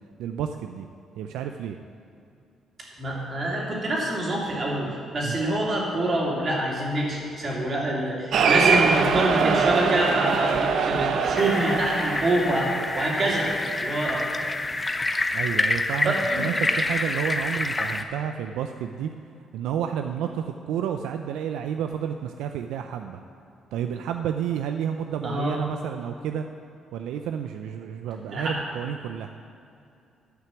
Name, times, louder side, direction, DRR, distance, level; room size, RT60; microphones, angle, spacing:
voice 1, 0.2-0.9 1.2-1.8 5.2-5.4 15.3-19.1 19.5-23.2 23.7-26.5 26.9-29.3, right 8 dB, 90° right, 6 dB, 0.4 m, -30 dB
voice 2, 3.0-14.2 16.0-16.5 25.2-25.6 28.3-28.6, right 1 dB, 45° right, -3 dB, 2.8 m, -26 dB
Cheering, 8.3-13.1, right 5 dB, 70° right, 0.7 m, -23 dB
sound 1, 11.4-18.0, left 2 dB, 20° left, 0.7 m, -27 dB
11.0 x 5.8 x 7.0 m, 2.5 s
cardioid pair, 90°, 0 cm